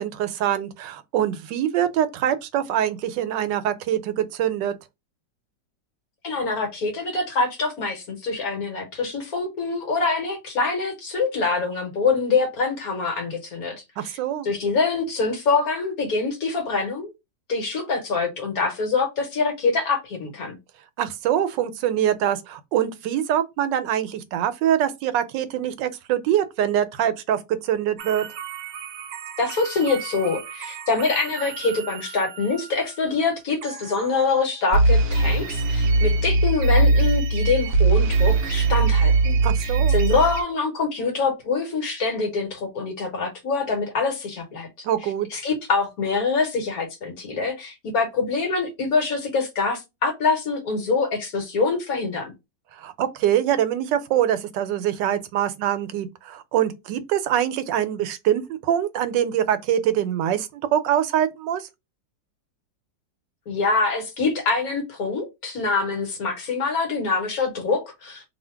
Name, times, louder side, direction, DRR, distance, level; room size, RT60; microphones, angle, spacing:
voice 1, 0.0-4.7 14.0-14.5 21.0-28.3 39.4-40.0 44.8-45.3 52.8-61.7, right 10 dB, 85° right, 1.2 m, -24 dB
voice 2, 6.2-13.7 14.0-14.1 14.4-17.1 17.5-20.6 29.4-39.4 39.6-44.7 45.3-52.3 63.5-68.2, left 4 dB, 60° left, 1.4 m, -25 dB
sound 1, 28.0-32.9 33.6-34.4 34.7-40.4, right 3 dB, 70° right, 0.8 m, -22 dB
2.7 x 2.7 x 4.4 m
omnidirectional pair, 1.9 m